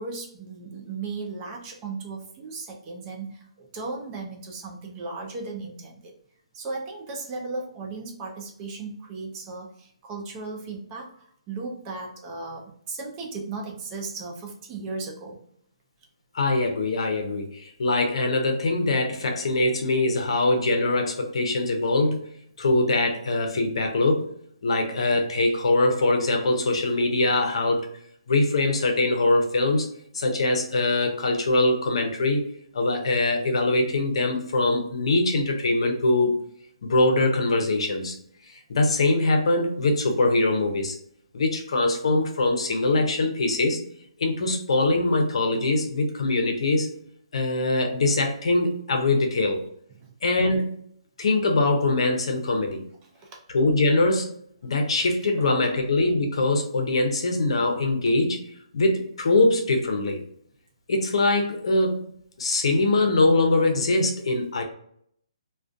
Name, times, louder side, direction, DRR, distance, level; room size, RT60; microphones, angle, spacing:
voice 1, 0.0-6.1 6.5-15.4 50.0-50.1 53.1-53.4 55.3-55.5, right 3 dB, 20° right, 0 dB, 0.4 m, -36 dB
voice 2, 16.3-22.2 22.6-24.2 24.6-27.9 28.3-29.9 30.1-32.4 32.7-36.3 36.8-38.2 38.5-41.0 41.3-43.8 44.2-46.9 47.3-49.6 50.2-50.7 51.2-52.8 53.5-54.3 54.6-58.4 58.7-60.2 60.9-62.0 62.4-64.6, left 2 dB, 65° left, 4 dB, 0.6 m, -23 dB
2.3 x 2.2 x 2.5 m, 0.67 s
hypercardioid pair, 160°, 3 cm